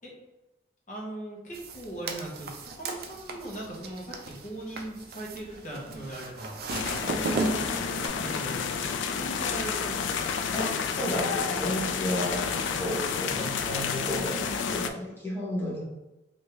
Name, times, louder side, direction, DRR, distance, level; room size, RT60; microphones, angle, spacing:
voice 1, 0.9-6.6 6.9-10.3 13.2-13.5, right 1 dB, 45° left, -4 dB, 1.0 m, -39 dB
sound 1, 1.5-8.1, right 3 dB, 55° right, 0.4 m, -36 dB
sound 2, 6.7-14.9, left 6 dB, 80° left, 0.3 m, -30 dB
voice 2, 10.5-15.8, left 1 dB, 10° left, -6 dB, 0.9 m, -33 dB
3.3 x 2.6 x 3.0 m, 1.0 s
head